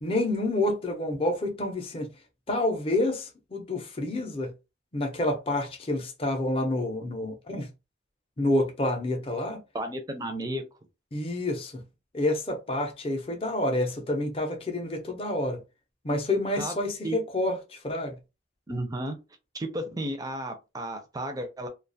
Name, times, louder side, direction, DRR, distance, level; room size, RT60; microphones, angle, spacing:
voice 1, 0.0-2.1 2.5-4.5 4.9-7.7 8.4-9.6 11.1-11.8 12.1-15.6 16.0-18.2, left 1 dB, 30° left, 0.5 m, -28 dB
voice 2, 9.7-10.6 16.6-16.8 17.0-17.2 18.7-19.2 19.5-21.7, right 1 dB, 20° right, 0.4 m, -33 dB
2.3 x 2.3 x 2.6 m
head